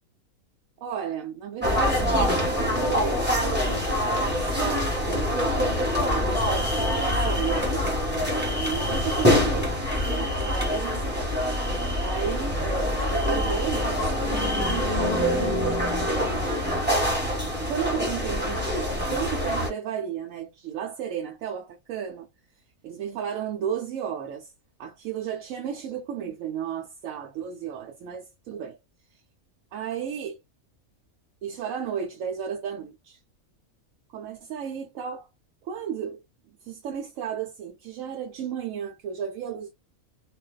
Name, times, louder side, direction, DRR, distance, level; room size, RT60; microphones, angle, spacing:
voice 1, 0.8-5.4 6.0-7.8 8.6-9.8 10.1-11.5 12.0-16.4 17.7-22.3 22.8-24.5 24.8-28.8 29.7-30.4 31.4-33.2 34.1-35.3 35.6-36.2 36.6-39.7, right 8 dB, 75° right, 0.9 m, -33 dB
sound 1, 1.6-19.7, left 1 dB, 10° right, 1.0 m, -25 dB
2.5 x 2.2 x 2.2 m
omnidirectional pair, 1.5 m